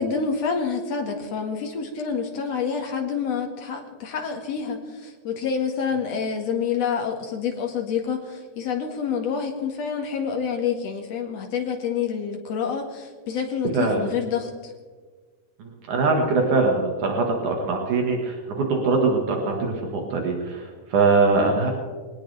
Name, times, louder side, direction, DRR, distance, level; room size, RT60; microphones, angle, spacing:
voice 1, 0.0-14.7, left 6 dB, 55° left, 2 dB, 2.9 m, -27 dB
voice 2, 13.7-14.1 15.9-21.7, right 3 dB, 75° right, 1 dB, 3.2 m, -22 dB
22.0 x 19.0 x 3.5 m, 1.5 s
omnidirectional pair, 3.6 m